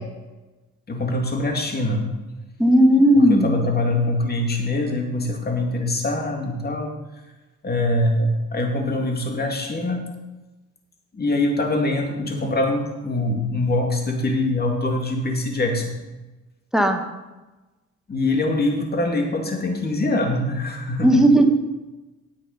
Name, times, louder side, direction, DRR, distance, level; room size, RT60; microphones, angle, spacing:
voice 1, 0.9-2.0 3.2-6.9 7.6-10.0 11.1-15.9 18.1-21.4, left 2 dB, 30° left, 2 dB, 2.3 m, -23 dB
voice 2, 2.6-3.5 16.7-17.0 21.0-21.4, equal, ahead, 4 dB, 1.4 m, -15 dB
9.2 x 8.5 x 5.5 m, 1.1 s
cardioid pair, 90°, 30 cm